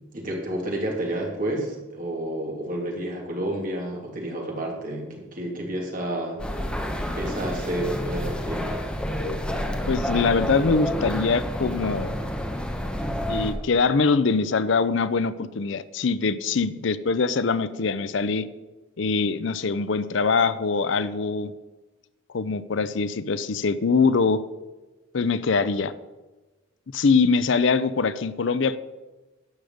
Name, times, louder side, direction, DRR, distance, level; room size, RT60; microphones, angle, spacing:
voice 1, 0.1-6.4 7.1-8.7, right 1 dB, 40° right, 0 dB, 2.6 m, -30 dB
sound 1, 6.4-13.5, equal, 5° left, 1.0 m, -29 dB
voice 2, 9.9-12.2 13.3-18.5 19.0-21.5 22.3-24.4 25.1-25.9 26.9-28.8, left 4 dB, 60° left, 15 dB, 0.5 m, -23 dB
12.0 x 5.1 x 7.8 m, 1.1 s
head